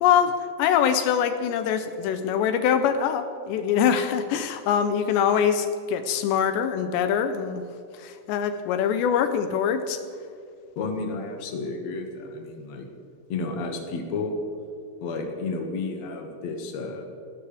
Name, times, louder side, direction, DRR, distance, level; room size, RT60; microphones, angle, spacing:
voice 1, 0.0-7.6 7.9-10.0, left 8 dB, 80° left, 8 dB, 2.9 m, -23 dB
voice 2, 10.8-12.9 13.3-14.4 15.0-17.0, left 3 dB, 50° left, 2 dB, 2.4 m, -31 dB
29.5 x 12.5 x 3.5 m, 2.5 s
omnidirectional pair, 5.1 m